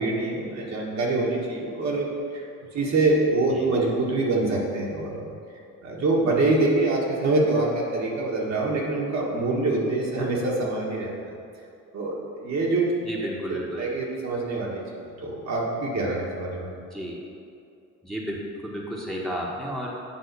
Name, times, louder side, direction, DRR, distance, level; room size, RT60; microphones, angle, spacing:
voice 1, 0.0-2.1 2.7-5.2 5.8-11.1 11.9-12.9 13.8-14.8 15.2-16.7, right 2 dB, 60° right, -3 dB, 1.8 m, -25 dB
voice 2, 13.0-14.0 16.9-17.2 18.0-19.9, equal, ahead, -4 dB, 1.5 m, -32 dB
8.9 x 3.6 x 6.9 m, 2.5 s
cardioid pair, 90°, 30 cm